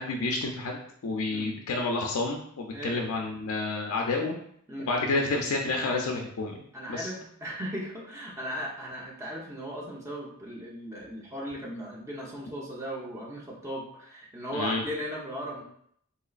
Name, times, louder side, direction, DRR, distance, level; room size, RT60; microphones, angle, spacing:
voice 1, 0.0-4.4 4.9-6.6 6.9-7.1 14.5-14.8, left 3 dB, 80° left, 1 dB, 0.4 m, -29 dB
voice 2, 2.7-3.0 4.7-4.9 5.6-5.8 6.7-15.6, equal, 15° right, -3 dB, 0.8 m, -37 dB
3.8 x 2.9 x 2.4 m, 0.66 s
head